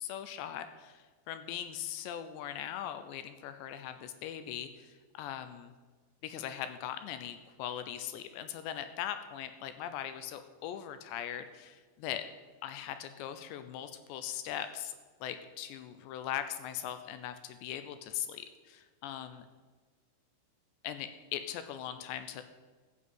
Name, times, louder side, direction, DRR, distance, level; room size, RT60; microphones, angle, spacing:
voice 1, 0.0-5.7 6.2-12.3 12.6-14.9 15.2-19.5 20.8-22.4, left 10 dB, 80° left, 10 dB, 2.8 m, -40 dB
14.5 x 7.4 x 7.8 m, 1.4 s
omnidirectional pair, 5.4 m